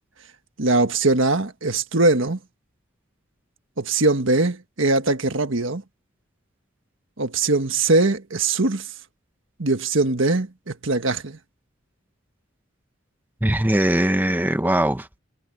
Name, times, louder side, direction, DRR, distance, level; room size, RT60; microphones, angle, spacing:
voice 1, 0.6-2.4 3.8-5.8 7.2-8.9 9.6-11.4, right 2 dB, 70° right, 1.6 m, -21 dB
voice 2, 13.4-15.2, right 1 dB, 10° right, 0.9 m, -21 dB
head